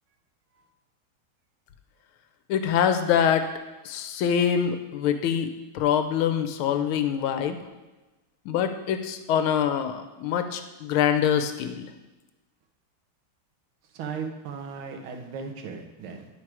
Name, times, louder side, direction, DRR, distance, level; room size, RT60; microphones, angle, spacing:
voice 1, 2.5-3.5 3.8-5.5 5.7-7.6 8.5-11.8, left 8 dB, 85° left, 8 dB, 1.5 m, -24 dB
voice 2, 13.9-16.3, right 5 dB, 85° right, 4 dB, 1.7 m, -36 dB
8.9 x 4.6 x 4.7 m, 1.1 s
omnidirectional pair, 2.3 m